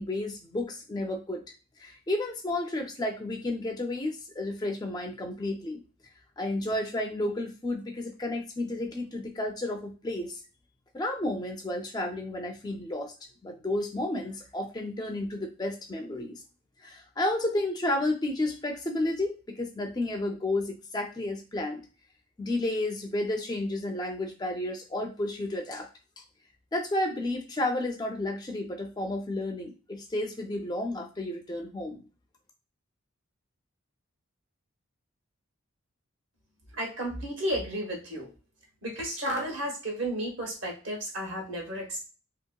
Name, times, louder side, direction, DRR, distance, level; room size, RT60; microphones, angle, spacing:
voice 1, 0.0-1.4 1.8-5.8 6.4-10.4 10.9-13.1 13.4-16.4 16.8-21.9 22.4-25.9 26.2-26.3 26.7-32.0, left 1 dB, 20° left, 2 dB, 0.4 m, -32 dB
voice 2, 36.7-38.3 38.8-42.0, right 1 dB, 60° right, -1 dB, 1.1 m, -33 dB
2.8 x 2.8 x 2.2 m, 0.34 s
head